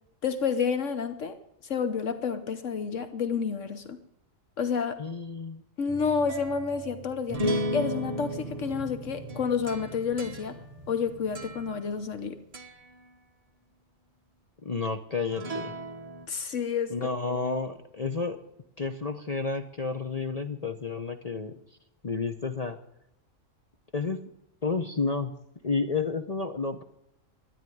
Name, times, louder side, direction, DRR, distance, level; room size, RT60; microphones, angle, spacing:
voice 1, 0.2-1.4 1.6-4.0 4.6-5.0 5.8-10.6 10.9-12.4 16.3-17.0, left 6 dB, 70° left, 9 dB, 1.3 m, -29 dB
voice 2, 5.0-5.6 14.6-15.7 16.9-18.4 18.8-21.6 22.0-22.8 23.9-24.2 24.6-25.3 25.6-26.8, left 4 dB, 35° left, 7 dB, 0.8 m, -31 dB
sound 1, 5.9-12.2 12.5-12.9 15.3-16.3, equal, 30° right, 1.2 m, -35 dB
13.0 x 10.5 x 9.3 m, 0.79 s
omnidirectional pair, 1.3 m